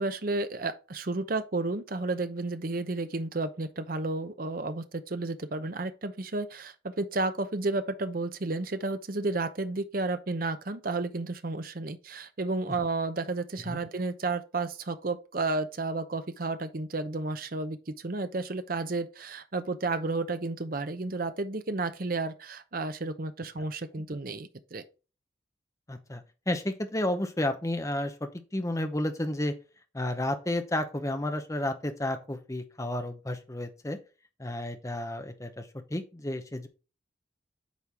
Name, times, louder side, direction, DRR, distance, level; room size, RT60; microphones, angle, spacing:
voice 1, 0.0-24.8, right 3 dB, 45° right, 0.7 m, -32 dB
voice 2, 25.9-29.5 29.9-34.0 34.4-36.7, left 1 dB, 15° left, 0.8 m, -32 dB
8.3 x 4.6 x 3.4 m
head